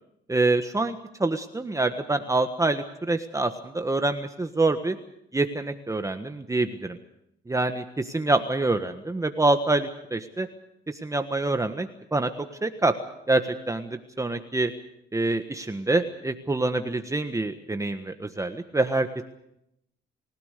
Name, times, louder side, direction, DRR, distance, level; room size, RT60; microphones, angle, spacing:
voice 1, 0.3-5.0 5.3-7.0 7.5-10.5 10.9-12.3 12.6-12.9 13.3-13.4 13.7-14.7 15.1-19.2, right 2 dB, 15° right, 7 dB, 1.5 m, -26 dB
29.5 x 16.5 x 6.7 m, 0.80 s
cardioid pair, 90°, 20 cm